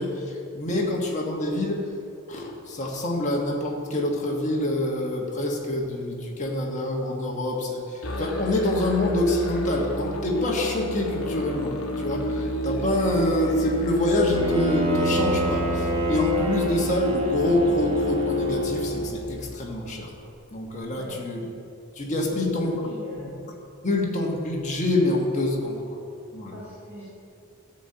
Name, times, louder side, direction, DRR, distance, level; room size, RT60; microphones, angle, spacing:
voice 1, 0.0-1.9 2.3-20.1 20.5-21.5 21.9-22.8 23.2-23.3 23.8-26.0 26.3-26.6, left 1 dB, 35° left, -1 dB, 1.5 m, -26 dB
Musical instrument, 8.0-19.6, right 1 dB, 85° left, 1.1 m, -31 dB
Bowed string instrument, 14.3-19.2, equal, 25° right, 1.2 m, -26 dB
voice 2, 22.8-23.4 26.5-27.0, right 1 dB, 10° right, -10 dB, 2.8 m, -40 dB
13.0 x 4.4 x 7.9 m, 2.6 s
head